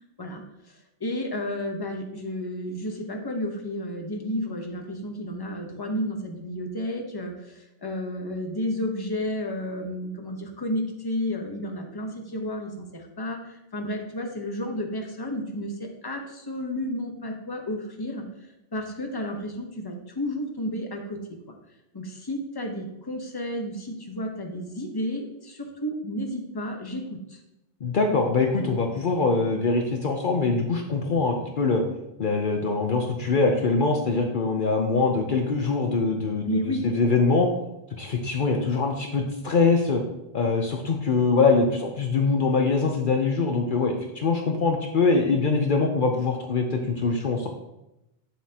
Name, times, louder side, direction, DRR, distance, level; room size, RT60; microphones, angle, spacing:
voice 1, 1.0-18.2 18.7-21.2 21.9-27.0 27.3-27.4 36.4-36.9, left 1 dB, 25° left, 2 dB, 1.0 m, -32 dB
voice 2, 27.8-31.8 32.2-37.5 38.0-40.0 40.3-47.5, left 4 dB, 55° left, 2 dB, 0.9 m, -23 dB
8.6 x 7.3 x 2.9 m, 0.91 s
omnidirectional pair, 1.0 m